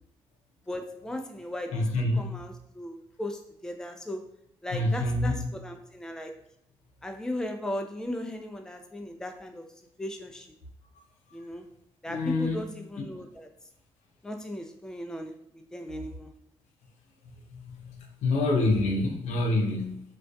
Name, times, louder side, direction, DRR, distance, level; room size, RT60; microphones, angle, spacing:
voice 1, 0.7-1.9 2.2-4.2 4.6-6.3 7.0-9.6 10.0-10.5 11.3-11.6 12.0-13.5 14.2-16.3, left 1 dB, 5° left, 4 dB, 0.3 m, -37 dB
voice 2, 1.7-2.3 4.7-5.4 12.1-12.6 17.5-20.0, left 2 dB, 80° left, 2 dB, 0.5 m, -27 dB
2.4 x 2.3 x 2.2 m, 0.76 s
supercardioid pair, 55°, 12 cm